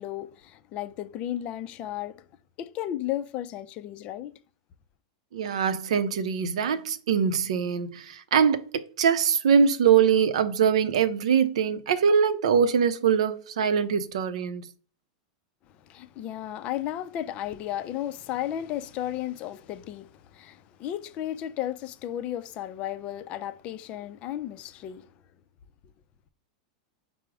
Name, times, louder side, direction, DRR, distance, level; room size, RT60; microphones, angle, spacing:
voice 1, 0.0-2.2 2.6-4.4 15.8-25.1, left 12 dB, 35° left, 0.4 m, -34 dB
voice 2, 5.3-14.7, right 7 dB, 80° right, 0.5 m, -23 dB
4.7 x 2.0 x 4.7 m
supercardioid pair, 135°, 3 cm